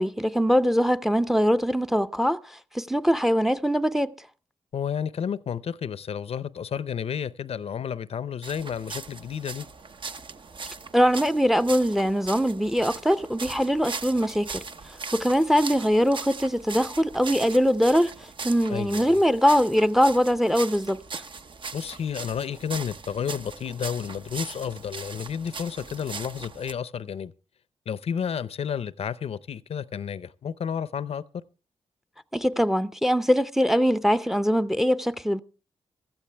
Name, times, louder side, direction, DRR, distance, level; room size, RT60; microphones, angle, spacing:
voice 1, 0.0-2.4 2.7-4.1 10.9-14.6 15.1-18.1 18.4-21.2 32.3-35.4, equal, 5° right, 0.6 m, -22 dB
voice 2, 4.7-9.7 18.7-19.2 21.7-27.3 27.9-31.2, left 7 dB, 65° left, 0.6 m, -31 dB
sound 1, 8.4-26.7, right 4 dB, 50° right, 0.8 m, -39 dB
16.0 x 13.5 x 3.3 m
cardioid pair, 65°, 11 cm